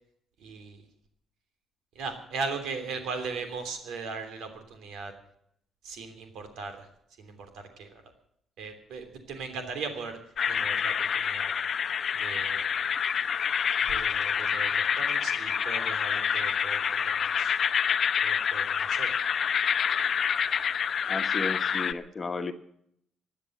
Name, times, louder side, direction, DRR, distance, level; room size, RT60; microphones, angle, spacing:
voice 1, 0.4-0.8 1.9-5.1 5.8-6.9 7.2-8.0 8.6-10.2 10.5-11.5 12.2-12.7 13.9-17.5 18.2-19.1, right 4 dB, 80° right, 7 dB, 3.1 m, -38 dB
sound 1, 10.4-21.9, left 7 dB, 55° left, 0.8 m, -27 dB
voice 2, 21.1-22.5, left 4 dB, 30° left, 8 dB, 1.4 m, -33 dB
16.5 x 9.7 x 7.9 m, 0.71 s
cardioid pair, 90°, 0 cm